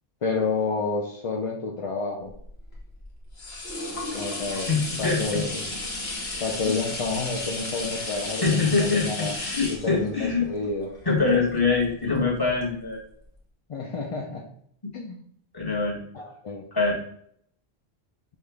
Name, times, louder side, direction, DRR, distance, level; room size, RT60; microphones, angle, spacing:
voice 1, 0.2-2.3 4.1-4.7 5.0-5.7 6.4-9.3 9.7-10.9 13.7-14.4 14.9-15.2 16.1-16.7, left 4 dB, 45° left, -2 dB, 0.5 m, -29 dB
sound 1, 2.3-12.1 12.6-12.7, left 2 dB, 70° left, 1.4 m, -34 dB
voice 2, 4.7-5.4 6.2-6.4 8.4-10.5 11.0-13.0 15.5-16.0 16.7-17.0, left 4 dB, 20° left, -3 dB, 1.2 m, -24 dB
5.5 x 2.4 x 3.3 m, 0.66 s
omnidirectional pair, 1.1 m